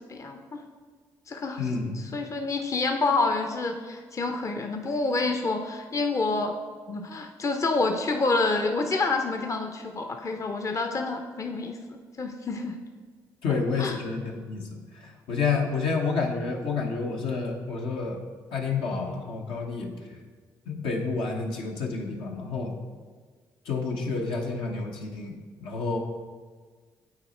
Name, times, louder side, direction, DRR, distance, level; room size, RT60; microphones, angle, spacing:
voice 1, 0.1-0.6 1.3-1.7 1.9-6.6 6.9-12.8 13.8-14.0, left 3 dB, 35° left, 5 dB, 0.6 m, -28 dB
voice 2, 1.6-2.2 13.4-18.2 18.5-19.9 20.7-22.7 23.7-25.3 25.6-26.0, left 4 dB, 70° left, 1 dB, 1.0 m, -29 dB
8.8 x 4.1 x 4.3 m, 1.5 s
hypercardioid pair, 50°, 9 cm